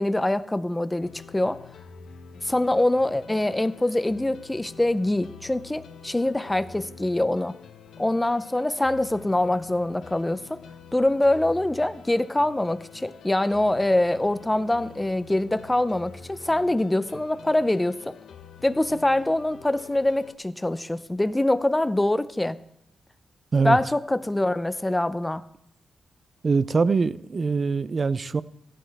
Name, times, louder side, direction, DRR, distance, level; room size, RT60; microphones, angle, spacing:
voice 1, 0.0-1.6 2.4-7.6 8.0-10.6 10.9-18.2 18.6-22.6 23.6-25.5, left 1 dB, 10° left, 0.6 m, -24 dB
sound 1, 1.0-20.3, left 6 dB, 75° left, 0.8 m, -47 dB
voice 2, 26.4-28.4, right 4 dB, 40° right, 0.5 m, -23 dB
15.5 x 12.0 x 3.5 m
cardioid pair, 110°, 0 cm